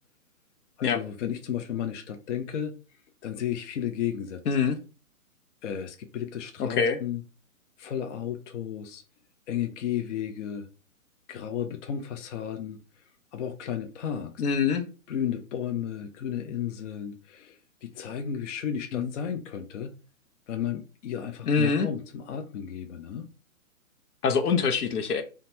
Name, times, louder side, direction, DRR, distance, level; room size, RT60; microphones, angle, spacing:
voice 1, 0.8-2.7 3.2-4.4 5.6-7.2 7.8-9.0 9.5-10.7 11.3-12.8 13.3-14.4 15.1-19.9 20.5-23.3, left 9 dB, 55° left, 0.5 m, -33 dB
voice 2, 4.5-4.8 6.6-7.0 14.4-14.8 18.9-19.1 21.5-21.9 24.2-25.2, left 5 dB, 90° left, 0.7 m, -24 dB
2.9 x 2.2 x 2.7 m
hypercardioid pair, 155°, 44 cm